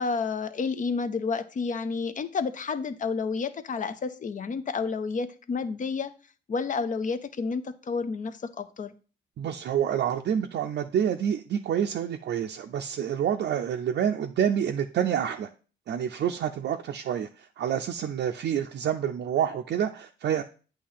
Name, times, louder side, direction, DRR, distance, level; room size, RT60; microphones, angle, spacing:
voice 1, 0.0-6.1 6.5-8.9, left 4 dB, 40° left, 11 dB, 0.6 m, -30 dB
voice 2, 9.4-15.5 15.9-20.4, right 9 dB, 60° right, 4 dB, 0.5 m, -28 dB
8.4 x 2.8 x 5.6 m, 0.37 s
cardioid pair, 90°, 20 cm